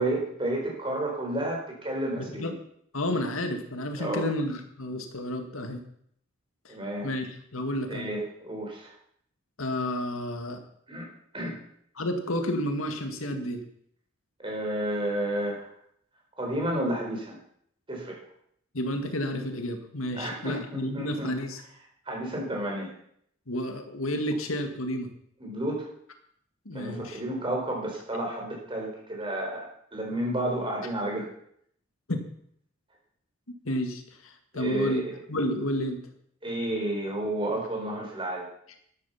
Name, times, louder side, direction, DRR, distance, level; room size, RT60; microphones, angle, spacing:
voice 1, 0.0-2.5 4.0-4.2 6.7-7.1 7.9-8.9 10.9-11.1 11.3-11.6 14.4-15.7 16.4-17.3 17.9-18.2 20.1-21.4 22.1-22.9 25.4-25.9 26.7-31.3 34.5-35.1 36.4-38.5, right 1 dB, 25° right, -1 dB, 4.7 m, -31 dB
voice 2, 2.2-2.5 2.9-5.8 6.7-6.8 7.0-8.1 9.6-10.6 12.0-13.6 18.7-21.6 23.5-25.1 26.7-27.2 32.1-32.2 33.7-36.0, left 1 dB, 90° left, 6 dB, 2.0 m, -31 dB
12.0 x 11.5 x 5.8 m, 0.68 s
head